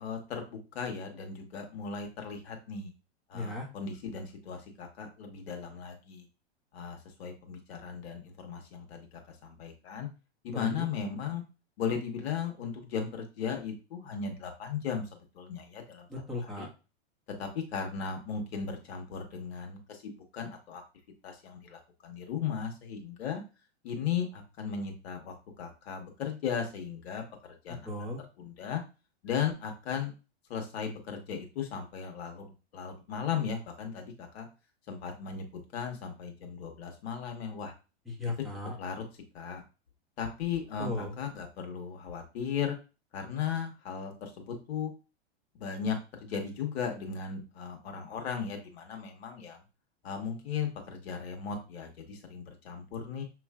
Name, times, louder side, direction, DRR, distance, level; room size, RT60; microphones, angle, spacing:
voice 1, 0.0-2.9 3.3-6.2 6.7-10.1 10.4-11.4 11.8-15.1 15.3-16.1 16.4-16.7 17.4-20.8 21.2-23.4 23.8-27.2 27.6-27.9 28.4-28.8 29.2-30.1 30.5-34.5 34.9-35.5 35.7-37.7 38.8-39.0 39.3-39.6 40.2-42.7 43.1-44.9 45.6-49.6 50.0-53.2, left 7 dB, 70° left, 4 dB, 1.4 m, -36 dB
voice 2, 3.3-3.7 10.5-10.9 16.1-16.7 27.8-28.2 38.1-38.8 40.8-41.1, left 2 dB, ahead, -3 dB, 1.4 m, -36 dB
6.4 x 3.1 x 2.4 m, 0.31 s
hypercardioid pair, 115°, 33 cm